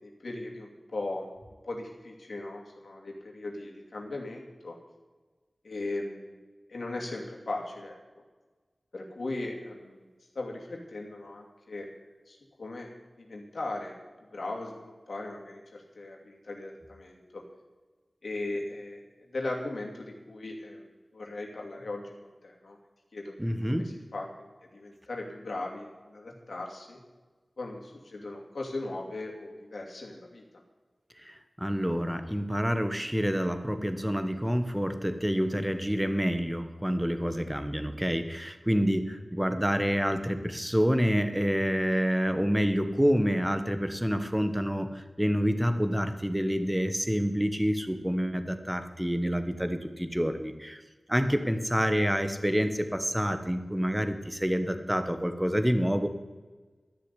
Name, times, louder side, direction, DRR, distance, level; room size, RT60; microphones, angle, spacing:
voice 1, 0.0-1.3 1.6-4.8 5.6-6.4 6.7-8.0 8.9-10.1 10.3-11.9 12.3-12.9 13.2-14.0 14.3-17.4 18.2-19.0 19.3-22.8 23.1-23.3 23.7-27.0 27.6-30.6 51.9-52.0, left 2 dB, 80° left, 0 dB, 2.6 m, -38 dB
voice 2, 23.4-23.9 31.3-50.8 51.1-56.1, equal, 10° right, 9 dB, 1.3 m, -28 dB
13.5 x 6.8 x 9.9 m, 1.3 s
wide cardioid pair, 65°, 0 cm